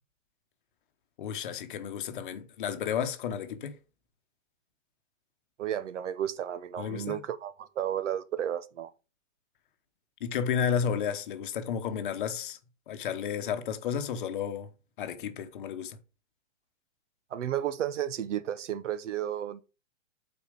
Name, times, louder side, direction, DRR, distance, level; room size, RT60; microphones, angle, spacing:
voice 1, 1.2-3.8 6.8-7.2 10.2-12.6 12.9-14.7 15.0-16.0, left 7 dB, 40° left, 1.0 m, -32 dB
voice 2, 5.6-8.9 17.3-19.6, right 10 dB, 65° right, 0.8 m, -33 dB
8.8 x 4.4 x 5.1 m
hypercardioid pair, 170°, 39 cm